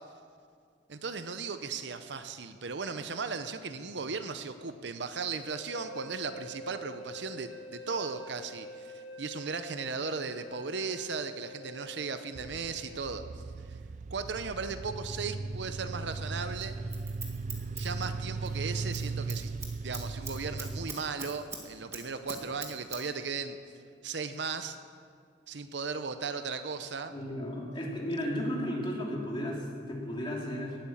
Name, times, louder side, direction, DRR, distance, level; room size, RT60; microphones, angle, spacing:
voice 1, 0.9-13.8 14.1-16.7 17.8-19.5 19.8-23.6 24.0-24.8 25.5-27.1, right 5 dB, 65° right, 10 dB, 0.8 m, -36 dB
sound 1, 5.4-13.0, left 1 dB, 70° left, 1.5 m, -46 dB
sound 2, 12.3-20.9, right 3 dB, 40° right, 0.3 m, -37 dB
Scissors, 16.6-18.6 18.8-19.0 19.3-21.6 21.9-23.0 23.3-23.4, right 3 dB, 15° right, 1.8 m, -42 dB
voice 2, 27.1-30.8, equal, 25° left, -3 dB, 2.9 m, -34 dB
18.5 x 8.8 x 7.3 m, 2.2 s
head